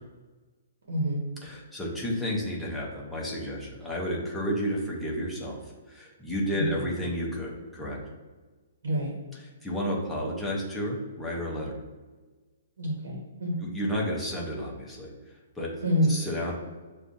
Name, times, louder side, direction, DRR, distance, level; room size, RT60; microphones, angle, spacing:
voice 1, 0.9-1.2 6.5-6.8 8.8-9.1 12.8-13.6 15.8-16.2, equal, 80° right, -2 dB, 1.0 m, -27 dB
voice 2, 1.4-8.0 9.6-11.7 13.6-15.7 16.1-16.5, equal, ahead, -5 dB, 0.6 m, -32 dB
6.7 x 2.3 x 2.5 m, 1.3 s
hypercardioid pair, 175°, 0 cm